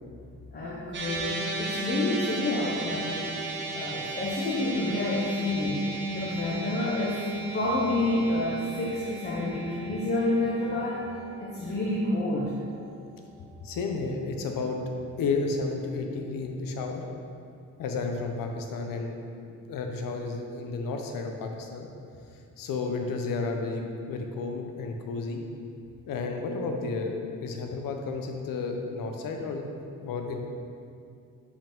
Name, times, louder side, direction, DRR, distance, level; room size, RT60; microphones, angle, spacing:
voice 1, 0.5-3.4 3.7-11.0 11.4-12.5, left 1 dB, 30° left, -6 dB, 0.6 m, -29 dB
sound 1, 0.9-13.4, right 2 dB, 35° right, 0.7 m, -37 dB
voice 2, 13.6-14.8 15.2-17.0 17.8-19.2 19.5-21.9 22.6-25.4 26.1-29.6 30.0-30.4, left 4 dB, 70° left, 3 dB, 0.7 m, -32 dB
5.2 x 5.0 x 3.7 m, 2.4 s
wide cardioid pair, 180°, 34 cm